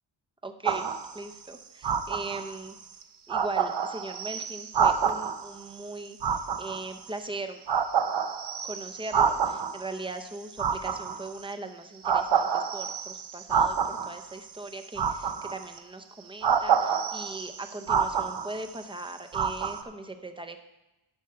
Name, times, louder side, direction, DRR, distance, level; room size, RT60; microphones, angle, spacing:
voice 1, 0.4-2.8 3.3-7.6 8.6-20.6, right 2 dB, 10° right, 7 dB, 0.6 m, -39 dB
sound 1, 0.6-1.2 1.8-2.6 3.0-3.1 3.3-5.5 6.2-7.3 7.7-9.8 10.5-11.5 12.0-14.2 15.0-15.8 16.4-18.8 19.3-19.8, right 7 dB, 55° right, 0.7 m, -27 dB
11.5 x 5.3 x 5.4 m, 1.0 s
wide cardioid pair, 145°, 49 cm